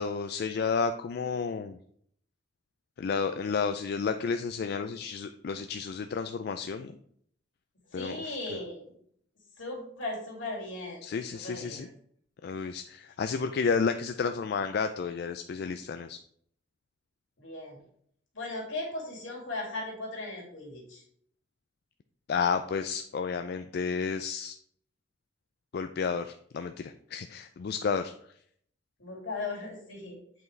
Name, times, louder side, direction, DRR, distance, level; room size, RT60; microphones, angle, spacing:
voice 1, 0.0-1.8 3.0-7.0 7.9-8.4 11.0-11.9 12.4-16.2 22.3-24.5 25.7-28.1, left 5 dB, 50° left, 8 dB, 0.3 m, -31 dB
voice 2, 7.9-8.9 9.6-11.0 11.3-11.9 17.4-17.8 18.3-21.0 29.0-30.2, left 2 dB, 75° left, -2 dB, 2.5 m, -37 dB
8.1 x 4.7 x 3.2 m, 0.65 s
head